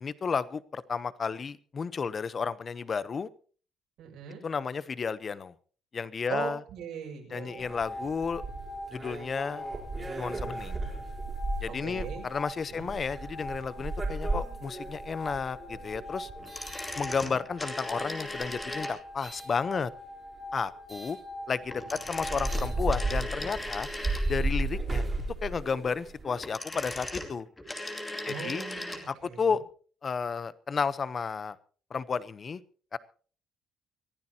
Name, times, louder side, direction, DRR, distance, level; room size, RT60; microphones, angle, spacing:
voice 1, 0.0-3.3 4.4-5.5 5.9-6.6 7.3-8.4 8.9-9.6 10.2-10.8 11.6-16.3 16.9-19.9 20.5-21.2 21.5-21.8 22.1-23.9 24.3-25.0 25.4-27.5 28.2-28.7 29.1-29.6 30.0-31.6 31.9-32.6 32.9-33.0, left 5 dB, 30° left, 17 dB, 0.8 m, -32 dB
voice 2, 4.0-4.4 6.3-7.7 11.7-12.3 12.7-12.9 17.0-17.4 21.8-22.0 28.3-29.5, right 7 dB, 80° right, 1 dB, 6.9 m, -40 dB
sound 1, 7.3-23.1, left 1 dB, 45° left, 5.7 m, -43 dB
sound 2, 7.6-17.6 18.3-19.5 20.9-21.2 21.7-21.8 22.1-26.2, right 2 dB, 20° right, 4.1 m, -35 dB
sound 3, 16.4-19.3 21.7-24.6 26.2-29.1 29.3-29.4, left 1 dB, 10° left, 2.4 m, -38 dB
24.0 x 15.0 x 2.9 m, 0.41 s
cardioid pair, 165°, 0 cm